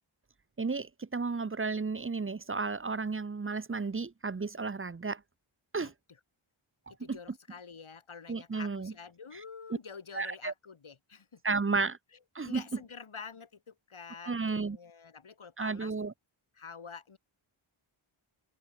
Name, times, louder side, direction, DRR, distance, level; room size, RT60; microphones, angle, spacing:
voice 1, 0.6-5.2 5.7-5.9 7.1-7.2 8.3-8.9 10.1-10.5 11.4-12.0 12.3-12.6 14.2-14.8 15.6-16.1, right 4 dB, 25° right, 0.7 m, -33 dB
voice 2, 7.0-11.4 12.4-15.9 16.6-17.2, left 5 dB, 75° left, 5.1 m, -47 dB
open air
wide cardioid pair, 95°, 50 cm